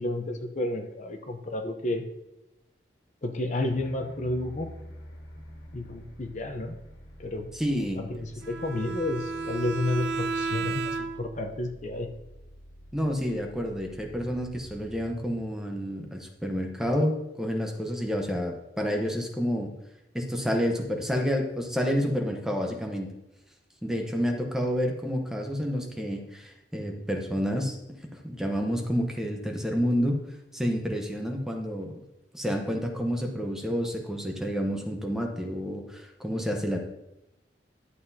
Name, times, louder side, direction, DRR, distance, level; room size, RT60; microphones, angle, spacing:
voice 1, 0.0-2.0 3.2-4.7 5.7-6.7 7.2-7.5 7.9-12.1, left 2 dB, 45° left, 5 dB, 0.7 m, -31 dB
sound 1, 3.7-16.4, equal, 90° left, 1.8 m, -48 dB
voice 2, 7.5-8.0 12.9-19.7 20.1-23.1 23.8-27.8 28.2-30.2 30.5-32.0 32.3-36.8, equal, 5° right, 2 dB, 0.9 m, -29 dB
Bowed string instrument, 8.4-11.4, right 4 dB, 70° right, 0.7 m, -32 dB
11.0 x 7.7 x 2.7 m, 0.93 s
head